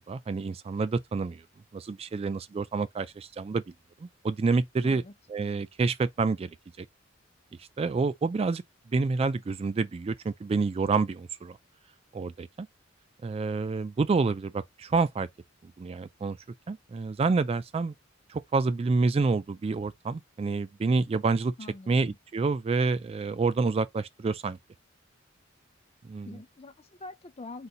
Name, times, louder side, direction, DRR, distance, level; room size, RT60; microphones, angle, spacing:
voice 1, 0.0-1.4 1.7-3.6 4.0-5.0 5.3-6.5 6.8-6.9 7.8-8.6 8.9-11.6 12.1-12.7 13.2-15.3 15.8-16.4 16.7-17.9 18.3-21.5 21.9-24.6 26.1-26.3, right 4 dB, 30° right, 0.3 m, -28 dB
voice 2, 4.8-5.1 21.6-22.2 26.2-27.7, left 2 dB, 30° left, 0.7 m, -44 dB
4.1 x 2.6 x 3.7 m
head